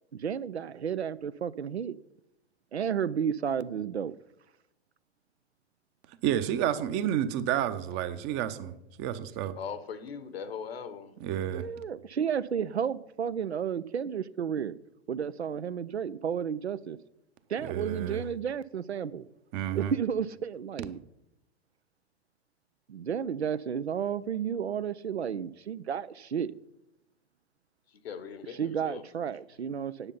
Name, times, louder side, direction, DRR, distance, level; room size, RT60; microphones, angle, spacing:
voice 1, 0.1-2.0 2.7-4.1 11.5-14.8 15.1-17.0 17.5-19.3 19.7-21.0 22.9-26.5 28.5-30.1, right 8 dB, 90° right, 17 dB, 0.5 m, -32 dB
voice 2, 6.2-9.6 11.2-11.6 17.6-18.2 19.5-19.9, right 11 dB, 35° right, 12 dB, 0.8 m, -30 dB
voice 3, 9.6-11.1 28.0-29.0, left 6 dB, 70° left, 13 dB, 1.1 m, -39 dB
9.9 x 6.7 x 5.5 m, 0.86 s
figure-of-eight pair, 105°, 32 cm